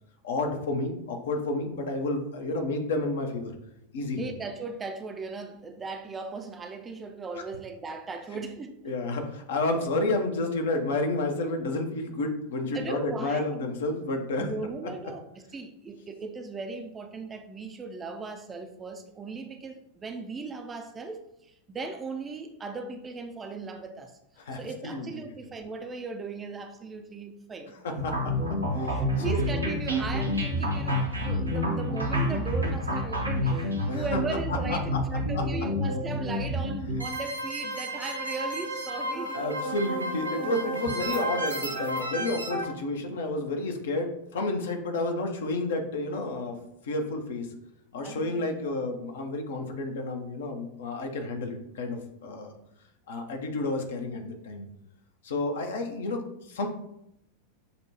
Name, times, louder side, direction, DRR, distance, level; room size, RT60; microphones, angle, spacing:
voice 1, 0.2-3.5 3.9-4.3 8.8-14.5 24.4-25.3 27.8-29.4 33.9-34.2 34.5-35.0 39.3-47.5 47.9-52.5 53.1-54.6 55.2-56.7, left 2 dB, 60° left, 4 dB, 0.7 m, -31 dB
voice 2, 4.2-8.8 12.7-13.6 14.4-15.2 15.5-24.2 24.5-28.0 28.9-39.4 48.0-48.4, right 3 dB, 20° right, 6 dB, 0.4 m, -38 dB
sound 1, 28.0-42.7, equal, 85° right, 0.9 m, -29 dB
6.5 x 2.2 x 2.9 m, 0.79 s
figure-of-eight pair, 90°, 0 cm